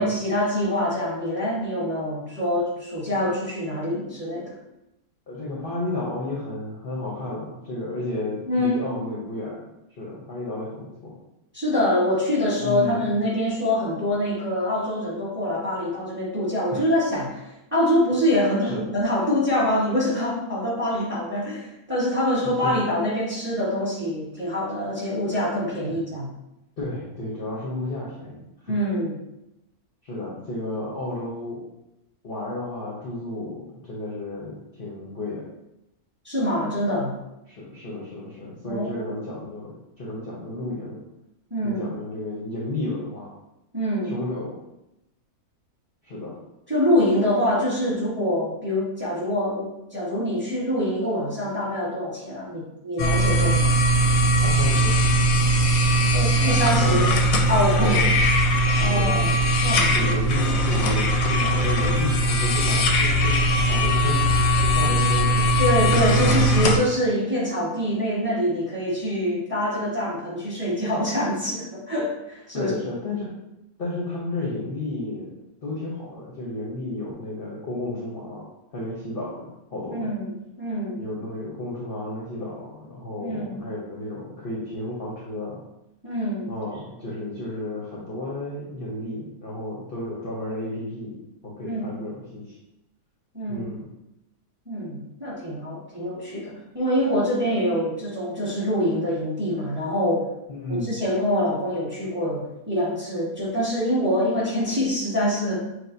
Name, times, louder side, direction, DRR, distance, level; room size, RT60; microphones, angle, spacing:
voice 1, 0.0-4.5 8.4-8.8 11.5-26.3 28.7-29.2 36.2-37.2 38.6-38.9 41.5-41.8 43.7-44.1 46.7-53.7 56.1-57.1 57.5-58.0 58.8-60.0 64.9-65.0 65.6-72.7 79.9-80.2 80.6-81.0 83.2-83.6 86.0-86.5 91.6-91.9 93.3-93.7 94.7-100.3 100.7-105.6, left 1 dB, 10° right, -7 dB, 1.3 m, -25 dB
voice 2, 5.3-11.2 12.6-13.0 16.7-16.8 18.6-18.8 22.4-22.8 25.9-26.0 26.8-28.7 30.0-31.6 32.2-35.4 37.5-41.0 41.6-43.3 44.0-44.6 46.0-46.4 54.4-55.0 56.8-57.0 57.8-58.2 58.9-59.4 59.9-64.2 64.6-65.5 72.5-73.3 73.8-75.3 75.6-80.1 81.0-85.6 86.5-91.2 91.4-92.6 93.5-93.9 100.5-100.9, left 2 dB, 45° left, -5 dB, 0.8 m, -32 dB
sound 1, 53.0-66.8, right 1 dB, 70° left, 1.0 m, -20 dB
5.9 x 2.4 x 2.6 m, 0.89 s
omnidirectional pair, 1.6 m